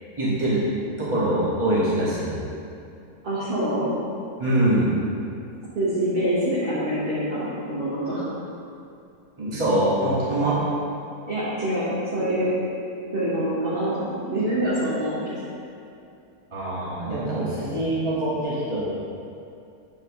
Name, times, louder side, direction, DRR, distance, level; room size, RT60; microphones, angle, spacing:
voice 1, 0.2-0.6 1.0-2.4 4.4-4.9 9.4-10.6 16.5-18.8, right 1 dB, 20° right, -10 dB, 1.8 m, -23 dB
voice 2, 3.2-3.9 5.7-8.2 11.3-11.9 12.1-12.5 13.1-15.4, right 1 dB, 35° right, -10 dB, 1.5 m, -25 dB
8.2 x 6.2 x 3.2 m, 2.6 s
omnidirectional pair, 1.6 m